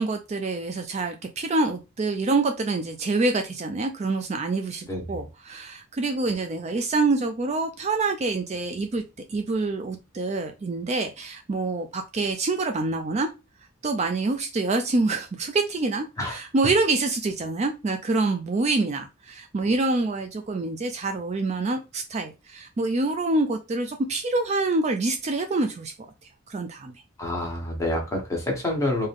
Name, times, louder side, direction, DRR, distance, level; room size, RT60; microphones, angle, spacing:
voice 1, 0.0-9.0 9.3-13.3 13.8-25.9 26.5-26.9, right 3 dB, 35° right, 0.4 m, -26 dB
voice 2, 4.8-5.2 16.2-16.4 27.2-29.1, left 1 dB, 15° left, 1.2 m, -28 dB
3.6 x 2.7 x 3.5 m
head